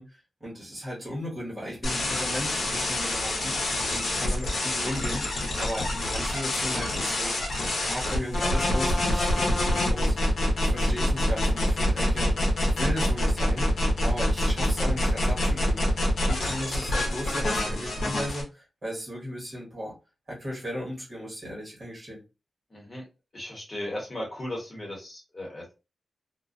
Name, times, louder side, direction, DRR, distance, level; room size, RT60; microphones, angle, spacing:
voice 1, 0.0-7.4 7.8-10.3 10.6-15.9 16.3-20.0 20.3-22.2, equal, 30° right, 1.1 m, -36 dB
sound 1, 1.8-18.4, left 1 dB, 70° left, 0.8 m, -26 dB
voice 2, 22.7-23.0 23.3-25.7, left 1 dB, 35° left, 1.0 m, -36 dB
2.3 x 2.2 x 2.5 m
wide cardioid pair, 140°, 0 cm